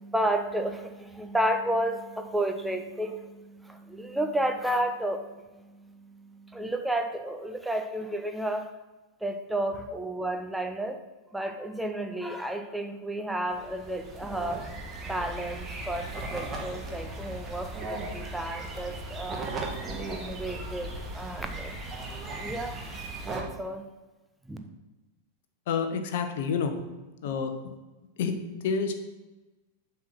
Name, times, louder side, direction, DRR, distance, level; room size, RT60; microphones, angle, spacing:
voice 1, 0.0-8.7 9.2-11.0 11.3-14.6 15.1-19.4 19.8-21.7 22.3-22.8 23.3-23.8 24.5-24.6, right 1 dB, 5° right, 6 dB, 0.8 m, -32 dB
sound 1, 13.5-23.4, right 2 dB, 20° right, 1.4 m, -37 dB
voice 2, 25.7-26.7 27.2-27.7 28.2-28.9, left 5 dB, 55° left, 7 dB, 0.9 m, -29 dB
7.4 x 4.5 x 5.9 m, 1.1 s
figure-of-eight pair, 90°, 0 cm